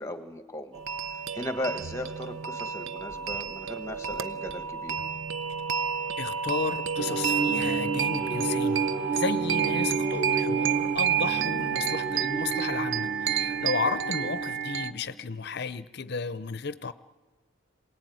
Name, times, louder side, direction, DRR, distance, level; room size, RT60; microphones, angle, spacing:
voice 1, 0.0-5.0 14.2-14.3, left 1 dB, 15° left, 7 dB, 1.5 m, -37 dB
sound 1, 0.7-14.9, right 7 dB, 70° right, 0.7 m, -30 dB
voice 2, 6.2-8.9 9.1-16.9, left 4 dB, 50° left, 14 dB, 0.7 m, -33 dB
sound 2, 7.0-15.2, right 4 dB, 10° right, 2.0 m, -32 dB
27.0 x 18.5 x 9.3 m, 1.4 s
head